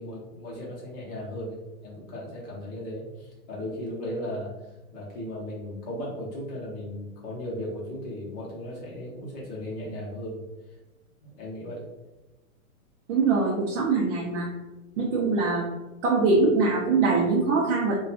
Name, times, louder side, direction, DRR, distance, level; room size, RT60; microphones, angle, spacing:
voice 1, 0.0-1.6 1.8-4.5 4.9-10.4 11.2-11.8, left 1 dB, 25° left, -4 dB, 0.6 m, -36 dB
voice 2, 13.1-14.5 15.0-15.7 16.0-17.9, right 3 dB, 55° right, -4 dB, 0.6 m, -23 dB
2.7 x 2.3 x 2.3 m, 1.1 s
hypercardioid pair, 155°, 44 cm